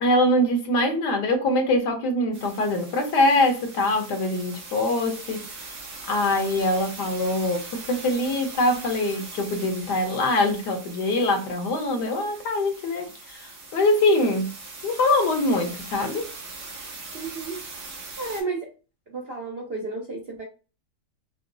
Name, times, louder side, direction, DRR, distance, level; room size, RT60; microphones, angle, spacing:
voice 1, 0.0-5.4 6.1-14.5 14.8-16.3, left 1 dB, 75° left, 1.5 m, -23 dB
sound 1, 2.3-18.4, right 3 dB, 75° right, 1.8 m, -41 dB
voice 2, 17.1-17.6 18.2-18.7 19.1-20.5, right 3 dB, 55° right, 0.7 m, -32 dB
4.9 x 2.0 x 2.6 m
omnidirectional pair, 1.8 m